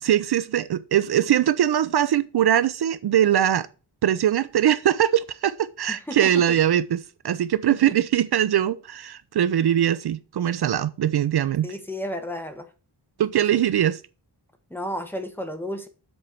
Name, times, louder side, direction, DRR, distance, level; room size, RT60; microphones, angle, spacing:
voice 1, 0.0-3.7 4.0-11.8 13.2-14.0, right 10 dB, 65° right, 0.5 m, -22 dB
voice 2, 5.9-6.6 7.7-7.9 11.6-12.7 13.5-13.6 14.7-15.9, equal, 5° left, 1.4 m, -33 dB
7.9 x 4.5 x 6.8 m
wide cardioid pair, 145°, 42 cm